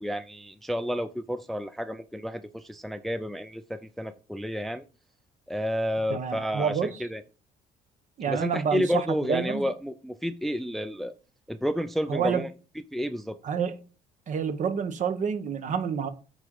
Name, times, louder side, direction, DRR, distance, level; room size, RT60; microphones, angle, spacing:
voice 1, 0.0-4.8 5.5-7.2 8.3-11.1 11.5-12.5 12.9-13.4, equal, ahead, 0.4 m, -30 dB
voice 2, 6.1-7.0 8.2-9.7 12.1-12.4 13.4-13.8 14.3-16.1, right 7 dB, 45° right, 1.0 m, -28 dB
8.2 x 3.8 x 4.8 m
cardioid pair, 110°, 17 cm